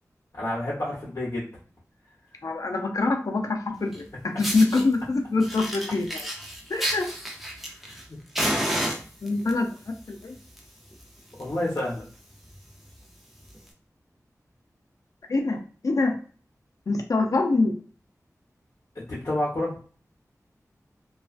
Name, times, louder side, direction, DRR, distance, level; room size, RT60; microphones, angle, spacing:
voice 1, 0.4-1.5 7.8-8.2 11.4-12.1 18.9-19.8, left 1 dB, 50° left, -7 dB, 0.9 m, -29 dB
voice 2, 2.4-6.2 6.7-7.1 9.2-10.4 15.3-16.2 16.9-17.8, left 3 dB, 65° left, 4 dB, 0.5 m, -25 dB
Fire, 3.9-4.0 4.4-4.8 5.4-8.0 8.3-9.5 10.3-10.6 10.9-11.0 11.4-11.5 11.7-12.0 12.5-12.6 13.5-13.6, equal, 5° right, 0.5 m, -30 dB
2.3 x 2.3 x 2.4 m, 0.41 s
wide cardioid pair, 60°, 6 cm